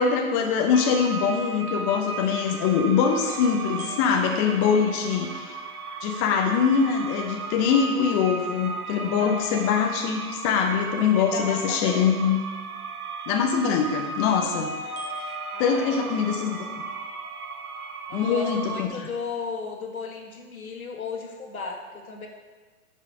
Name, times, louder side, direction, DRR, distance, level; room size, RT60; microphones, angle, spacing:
voice 1, 0.0-5.5 6.0-12.4 13.3-14.7 15.6-16.6 18.1-18.9, left 6 dB, 25° left, 2 dB, 0.7 m, -23 dB
sound 1, 0.7-18.8, right 4 dB, 85° right, 1.0 m, -36 dB
sound 2, 3.3-7.2 14.4-18.4, left 3 dB, 10° right, 0.4 m, -44 dB
voice 2, 9.1-9.6 11.2-12.3 15.5-16.6 18.1-22.3, left 4 dB, 75° left, 1 dB, 1.8 m, -36 dB
9.7 x 5.6 x 5.0 m, 1.4 s
figure-of-eight pair, 120°, 43 cm